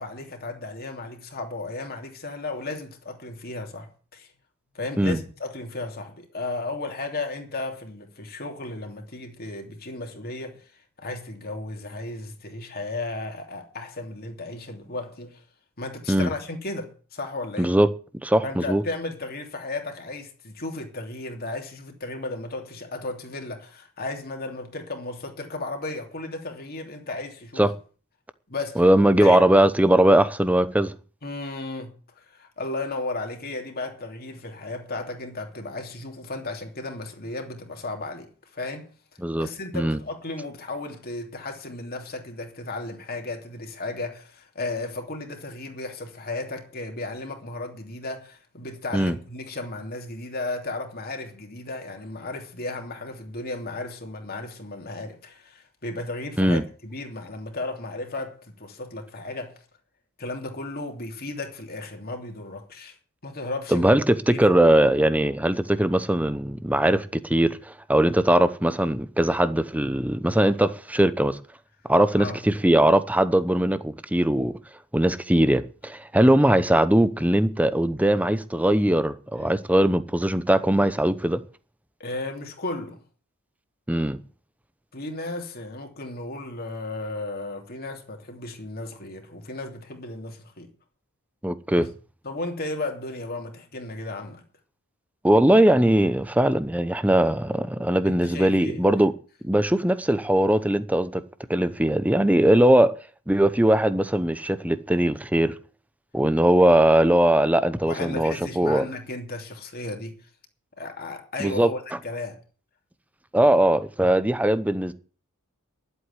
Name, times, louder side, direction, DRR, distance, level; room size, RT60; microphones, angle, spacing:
voice 1, 0.0-4.3 4.7-10.6 11.0-15.4 15.8-17.7 18.4-27.7 28.5-28.8 29.2-29.4 31.2-38.9 39.4-59.6 60.2-63.0 63.2-63.9 64.3-64.4 72.2-72.4 82.0-83.0 84.9-90.7 91.8-91.9 92.2-94.4 98.0-98.8 107.9-110.1 110.8-112.4, left 2 dB, 45° left, 3.0 m, -34 dB
voice 2, 17.6-17.9 18.2-18.8 27.6-27.7 28.8-30.9 39.2-39.5 39.7-40.0 48.9-49.1 56.4-56.6 63.7-71.4 71.9-74.6 74.9-81.4 83.9-84.2 91.4-91.9 95.2-99.1 99.4-101.2 101.5-102.9 103.3-105.5 106.1-108.8 111.4-111.7 113.3-114.9, right 1 dB, 5° right, 0.8 m, -20 dB
11.5 x 8.2 x 9.7 m
head